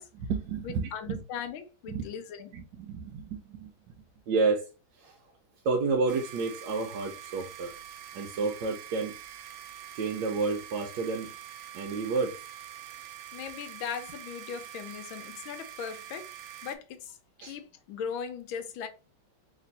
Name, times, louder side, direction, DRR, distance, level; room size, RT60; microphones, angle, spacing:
voice 1, 0.1-1.2 1.9-2.0 2.5-3.9 4.3-4.7 4.9-5.2 5.6-7.7 8.1-9.1 9.9-11.3 11.7-12.4 17.4-17.6, right 4 dB, 70° right, 1.2 m, -30 dB
voice 2, 0.9-2.5 13.3-16.3 16.6-18.9, left 7 dB, 90° left, 1.5 m, -39 dB
sound 1, 6.1-16.8, right 11 dB, 90° right, 1.4 m, -45 dB
3.4 x 3.0 x 4.0 m
omnidirectional pair, 2.2 m